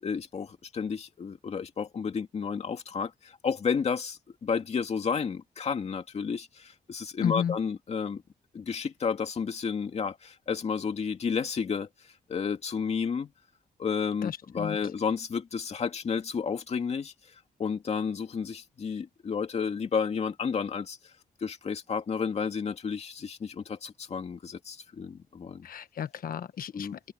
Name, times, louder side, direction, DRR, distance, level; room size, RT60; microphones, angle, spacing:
voice 1, 0.0-8.2 8.5-11.9 12.3-13.3 13.8-17.1 17.6-21.0 21.4-25.7 26.7-26.9, left 6 dB, 40° left, 2.3 m, -31 dB
voice 2, 7.2-7.6 14.2-14.8 25.6-27.1, left 8 dB, 65° left, 1.2 m, -33 dB
open air
wide cardioid pair, 165°, 16 cm